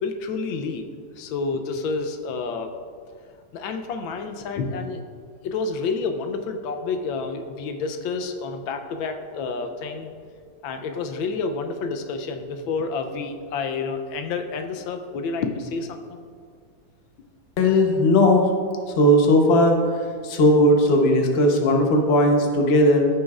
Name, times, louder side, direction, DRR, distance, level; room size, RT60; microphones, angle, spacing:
voice 1, 0.0-0.8 1.2-2.7 3.5-5.0 5.4-10.1 10.6-16.3, left 4 dB, 90° left, 6 dB, 1.4 m, -29 dB
voice 2, 17.6-18.4 19.0-19.8 20.2-23.1, left 1 dB, 45° left, 2 dB, 0.8 m, -17 dB
15.0 x 6.3 x 2.4 m, 2.1 s
omnidirectional pair, 2.1 m